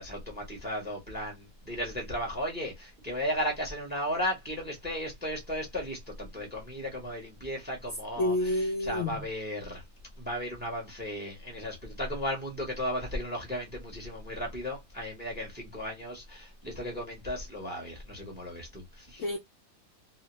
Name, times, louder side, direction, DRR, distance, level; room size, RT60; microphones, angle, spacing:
voice 1, 0.0-9.8 10.2-19.2, equal, 10° right, 0.6 m, -35 dB
voice 2, 8.2-9.2 19.2-19.4, left 1 dB, 70° left, 0.7 m, -28 dB
3.0 x 2.1 x 2.9 m
omnidirectional pair, 1.8 m